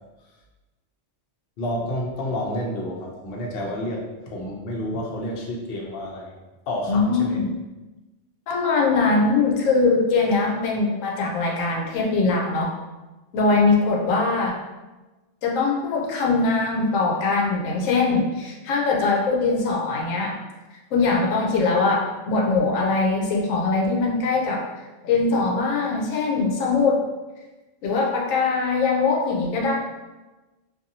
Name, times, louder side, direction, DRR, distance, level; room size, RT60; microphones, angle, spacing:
voice 1, 1.6-6.3 6.7-7.4, left 1 dB, 60° left, -2 dB, 0.7 m, -30 dB
voice 2, 6.9-7.4 8.5-12.7 13.3-14.6 15.4-20.4 20.9-24.6 25.0-27.0 27.8-29.7, left 3 dB, 85° left, -1 dB, 1.0 m, -21 dB
2.7 x 2.5 x 2.7 m, 1.1 s
omnidirectional pair, 1.3 m